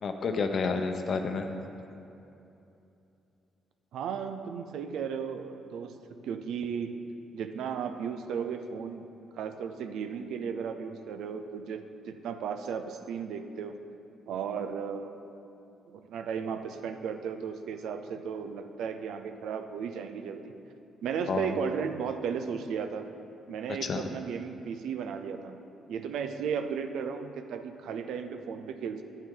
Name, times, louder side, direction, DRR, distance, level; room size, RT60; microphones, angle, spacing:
voice 1, 0.0-1.5 21.3-21.6 23.7-24.0, left 4 dB, 55° left, 6 dB, 0.8 m, -30 dB
voice 2, 3.9-6.0 6.2-7.0 7.3-9.1 9.4-13.8 14.3-15.1 15.9-20.5 21.0-23.1 23.5-25.6 25.9-29.0, right 6 dB, 80° right, 8 dB, 0.5 m, -35 dB
9.4 x 9.0 x 3.8 m, 2.8 s
cardioid pair, 90°, 0 cm